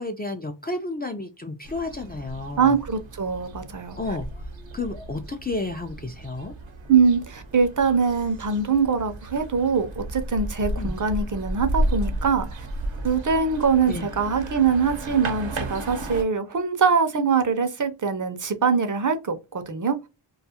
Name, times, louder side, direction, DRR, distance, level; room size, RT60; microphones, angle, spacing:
voice 1, 0.0-2.8 4.0-4.3 4.7-6.5 10.8-10.9 13.9-14.1, left 2 dB, 25° left, 0.3 m, -31 dB
sound 1, 1.6-16.2, right 1 dB, 90° right, 0.8 m, -33 dB
voice 2, 2.6-4.0 6.9-12.7 13.0-19.4 19.7-20.0, right 5 dB, 45° right, 0.5 m, -23 dB
2.3 x 2.3 x 2.7 m
wide cardioid pair, 90°, 44 cm